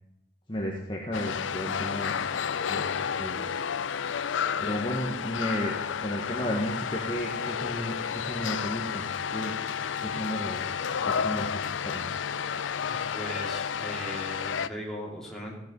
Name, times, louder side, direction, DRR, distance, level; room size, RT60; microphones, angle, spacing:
voice 1, 0.5-2.2 2.7-3.6 4.6-9.5 10.0-10.6 11.0-12.1, equal, 25° left, -2 dB, 1.4 m, -33 dB
sound 1, 1.1-14.7, left 7 dB, 85° left, 0.5 m, -31 dB
voice 2, 12.9-15.6, equal, ahead, -4 dB, 3.0 m, -38 dB
15.0 x 9.5 x 5.4 m, 0.83 s
head